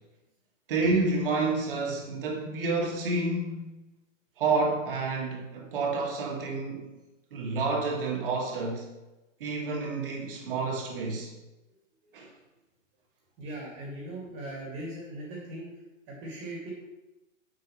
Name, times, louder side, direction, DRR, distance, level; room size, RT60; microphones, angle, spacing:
voice 1, 0.7-3.7 4.4-6.9 7.3-8.9 9.4-11.3 12.1-12.3, right 3 dB, 45° right, 0 dB, 1.9 m, -29 dB
voice 2, 13.4-15.7 16.1-16.7, right 1 dB, 25° right, -3 dB, 2.0 m, -39 dB
9.4 x 7.3 x 3.1 m, 1.0 s
hypercardioid pair, 180°, 39 cm